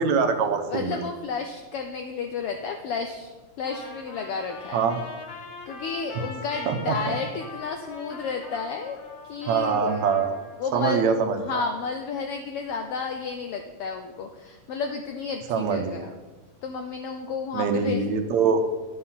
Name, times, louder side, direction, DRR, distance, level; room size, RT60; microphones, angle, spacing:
voice 1, 0.0-1.0 4.7-5.0 6.7-7.2 9.5-10.3 10.7-11.7 15.5-16.0 17.5-18.6, right 5 dB, 75° right, 6 dB, 2.0 m, -24 dB
voice 2, 0.7-3.3 3.6-4.8 5.7-9.0 9.3-16.1 16.6-18.2, left 5 dB, 85° left, 5 dB, 1.3 m, -32 dB
Trumpet, 3.7-10.7, left 3 dB, 50° left, 2.0 m, -42 dB
11.5 x 6.8 x 5.7 m, 1.2 s
omnidirectional pair, 3.4 m